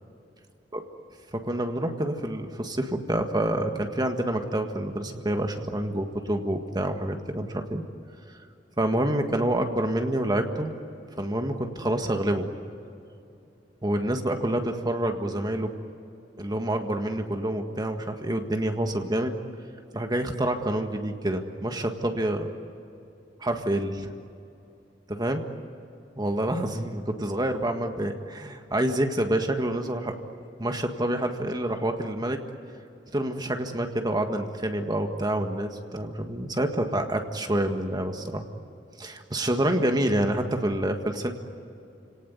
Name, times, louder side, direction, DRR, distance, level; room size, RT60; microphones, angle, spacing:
voice 1, 1.3-7.8 8.8-10.8 11.2-12.5 13.8-15.7 16.4-19.3 19.9-22.5 23.4-24.1 25.1-25.4 26.2-30.1 30.6-32.4 33.1-38.4 39.0-41.3, right 1 dB, 25° right, 5 dB, 1.7 m, -27 dB
30.0 x 18.5 x 9.5 m, 2.7 s
head